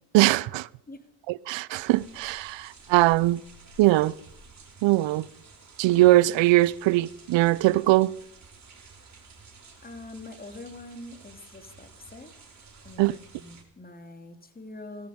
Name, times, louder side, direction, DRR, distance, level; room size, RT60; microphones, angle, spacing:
voice 1, 0.1-0.7 1.3-3.4 3.8-4.1 4.8-5.3 5.8-8.1 13.0-13.2, right 17 dB, 70° right, 0.8 m, -21 dB
sound 1, 1.7-13.6, right 4 dB, 35° right, 6.4 m, -51 dB
voice 2, 9.8-15.1, left 2 dB, 20° left, 3.3 m, -44 dB
18.0 x 14.0 x 5.3 m
supercardioid pair, 80°, 46 cm